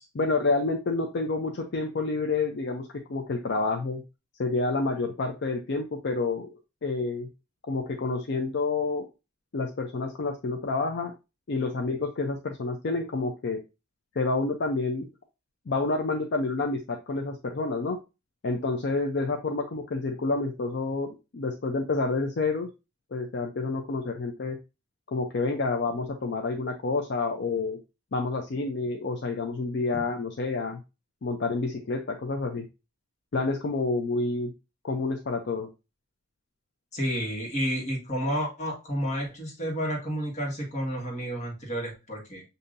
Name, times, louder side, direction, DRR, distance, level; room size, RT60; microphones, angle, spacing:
voice 1, 0.1-4.0 4.4-6.5 6.8-7.3 7.6-9.0 9.5-11.1 11.5-13.6 14.2-15.1 15.7-18.0 18.4-22.7 23.1-24.6 25.1-27.8 28.1-30.8 31.2-32.7 33.3-34.5 34.8-35.7, left 3 dB, 60° left, 3 dB, 0.5 m, -29 dB
voice 2, 36.9-42.4, equal, 35° left, -2 dB, 1.5 m, -30 dB
6.7 x 2.7 x 2.6 m, 0.27 s
head